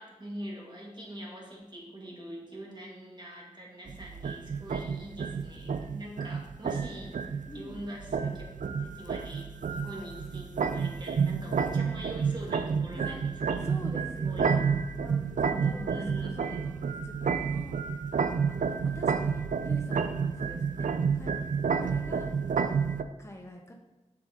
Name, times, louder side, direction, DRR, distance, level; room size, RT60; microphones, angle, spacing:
voice 1, 0.0-7.2 7.5-13.7 14.2-14.4 15.5-16.7, right 1 dB, 35° right, -2 dB, 2.1 m, -43 dB
sound 1, 3.9-23.0, right 6 dB, 85° right, 0.4 m, -30 dB
voice 2, 7.5-7.9 12.9-13.2 13.6-14.7 14.9-17.8 18.5-20.9 21.1-21.4 21.8-22.3 23.2-23.7, equal, 20° left, 2 dB, 0.8 m, -46 dB
7.3 x 5.9 x 3.7 m, 1.1 s
wide cardioid pair, 55°, 13 cm